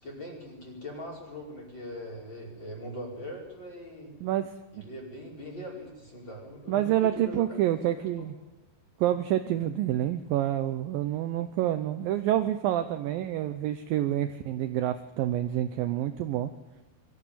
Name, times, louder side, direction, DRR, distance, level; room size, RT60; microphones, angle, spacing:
voice 1, 0.0-4.1 4.7-7.4 7.9-8.3, equal, 25° left, -2 dB, 5.6 m, -41 dB
voice 2, 4.2-4.9 6.7-8.3 9.0-16.5, right 12 dB, 85° right, 9 dB, 2.0 m, -28 dB
22.5 x 14.0 x 9.3 m, 1.1 s
omnidirectional pair, 5.1 m